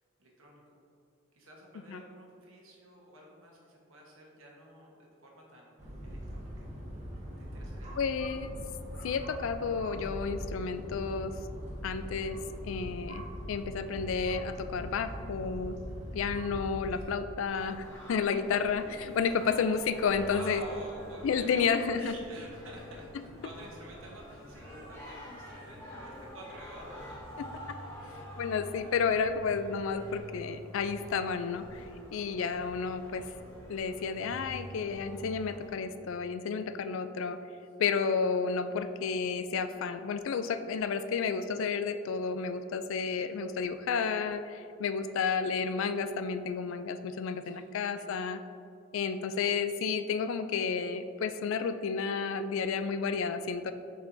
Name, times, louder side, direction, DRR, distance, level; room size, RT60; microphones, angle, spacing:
voice 1, 0.2-0.8 1.3-5.7 6.0-6.7 7.4-8.0 15.9-16.3 16.9-17.2 19.2-19.5 20.3-21.7 21.9-27.2 28.1-28.3 32.0-32.3 38.8-38.9 47.5-48.3, right 1 dB, 70° right, -2 dB, 1.2 m, -50 dB
sound 1, 5.8-17.0, equal, 30° right, 1.1 m, -41 dB
voice 2, 8.0-8.5 9.0-11.3 11.8-12.4 12.6-15.8 16.1-20.6 21.2-22.1 28.4-31.8 32.1-33.3 33.7-37.4 37.8-48.4 48.9-53.7, left 5 dB, 65° left, 11 dB, 0.3 m, -31 dB
Singing, 17.4-35.7, equal, 15° left, 1.3 m, -47 dB
7.1 x 5.5 x 2.6 m, 2.6 s
head